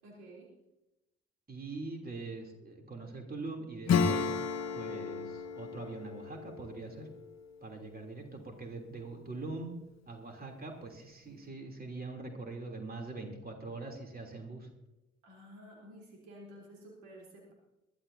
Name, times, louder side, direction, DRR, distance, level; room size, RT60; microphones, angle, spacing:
voice 1, 0.0-0.5 15.2-17.5, equal, 75° right, -3 dB, 3.8 m, -52 dB
voice 2, 1.5-4.3 4.7-7.1 7.6-9.7 10.1-14.7, right 3 dB, 25° right, 2 dB, 3.2 m, -43 dB
Acoustic guitar / Strum, 3.9-8.2, left 5 dB, 50° left, 1.2 m, -33 dB
22.5 x 12.5 x 2.8 m, 0.95 s
hypercardioid pair, 45°, 35 cm